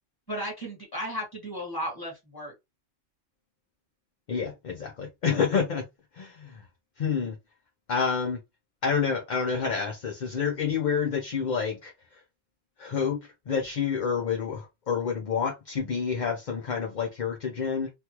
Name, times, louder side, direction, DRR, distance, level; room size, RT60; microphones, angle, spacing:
voice 1, 0.3-2.5, equal, 20° left, 1.6 m, -34 dB
voice 2, 4.3-5.9 6.1-6.6 7.0-7.4 7.9-8.4 8.8-11.9 12.8-13.2 13.5-17.9, left 6 dB, 50° left, 0.6 m, -28 dB
3.3 x 2.3 x 2.9 m
omnidirectional pair, 1.3 m